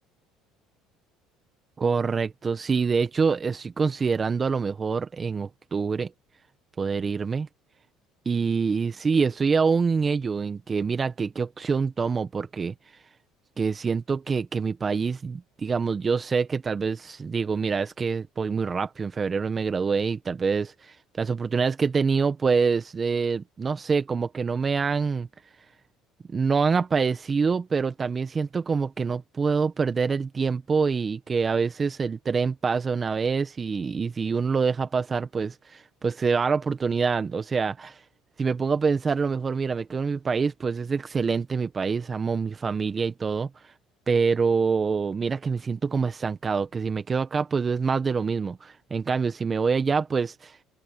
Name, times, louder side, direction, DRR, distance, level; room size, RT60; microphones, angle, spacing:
voice 1, 1.8-6.1 6.8-7.5 8.2-12.7 13.6-25.3 26.3-38.0 38.4-43.5 44.1-50.6, right 5 dB, 30° right, 1.5 m, -26 dB
supercardioid pair, 85°, 0 cm